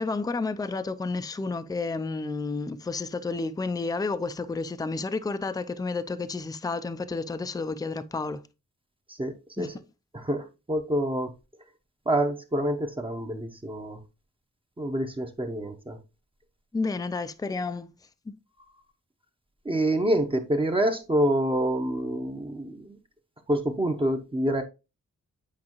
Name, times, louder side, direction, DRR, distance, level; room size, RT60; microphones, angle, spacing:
voice 1, 0.0-8.4 9.6-9.7 16.7-17.9 18.3-18.4, left 3 dB, 15° left, 0.4 m, -31 dB
voice 2, 9.2-9.7 10.1-11.3 12.1-14.0 14.8-16.0 19.6-23.0 23.5-24.6, right 1 dB, 20° right, 0.8 m, -27 dB
8.5 x 4.8 x 3.0 m
wide cardioid pair, 115°, 29 cm